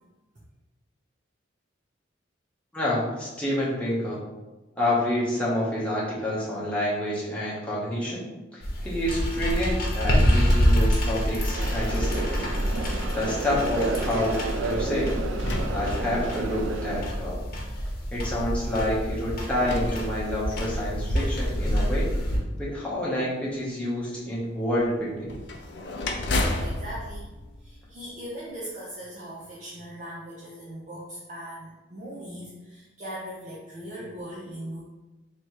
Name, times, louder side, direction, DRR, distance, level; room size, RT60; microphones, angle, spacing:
voice 1, 2.7-4.2 4.8-8.3 8.5-12.4 13.1-14.4 14.6-15.1 15.7-17.4 18.1-22.1 22.6-25.4, left 1 dB, 5° left, -7 dB, 1.0 m, -28 dB
sound 1, 8.6-22.4, equal, 50° left, 1.0 m, -27 dB
sound 2, 11.5-17.0, right 3 dB, 90° right, 0.4 m, -32 dB
sound 3, 14.6-16.6 17.4-17.5 19.3-21.9 25.3-28.3, left 2 dB, 70° left, 0.5 m, -33 dB
voice 2, 26.6-34.8, equal, 40° right, -6 dB, 0.6 m, -39 dB
3.2 x 3.0 x 4.5 m, 1.1 s
head